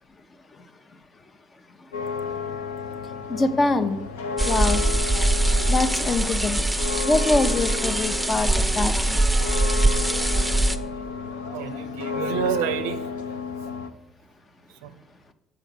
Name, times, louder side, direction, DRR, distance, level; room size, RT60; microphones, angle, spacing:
sound 1, 1.9-13.9, left 5 dB, 80° left, 0.6 m, -32 dB
voice 1, 3.3-4.0 4.5-4.8 5.7-6.6 7.0-9.2, left 2 dB, 35° left, 10 dB, 0.8 m, -24 dB
sound 2, 4.4-10.8, right 2 dB, 5° right, 0.7 m, -22 dB
voice 2, 11.5-13.2 14.7-15.0, right 9 dB, 75° right, 11 dB, 0.4 m, -29 dB
7.6 x 5.1 x 6.5 m, 0.90 s
figure-of-eight pair, 45°, 0 cm